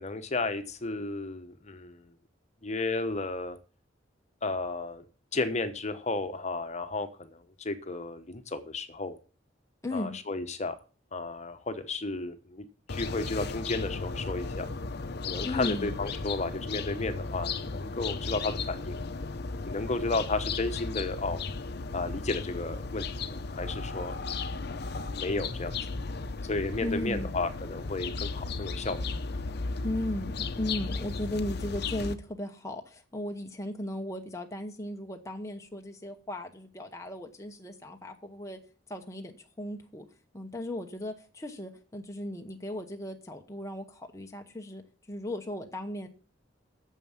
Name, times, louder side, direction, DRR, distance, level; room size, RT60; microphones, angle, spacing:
voice 1, 0.0-2.0 2.6-3.6 4.4-5.0 5.3-9.2 9.9-10.7 11.1-14.7 15.2-19.0 19.6-21.4 21.9-24.3 24.9-25.8 26.4-29.0, left 3 dB, 35° left, 9 dB, 1.1 m, -33 dB
voice 2, 9.8-10.2 15.4-15.9 26.8-27.3 29.8-38.6 38.9-40.1 40.3-44.8 45.1-46.1, left 1 dB, 15° left, 4 dB, 0.9 m, -36 dB
sound 1, 12.9-32.1, left 4 dB, 60° left, 0.8 m, -35 dB
9.2 x 7.3 x 7.3 m, 0.38 s
head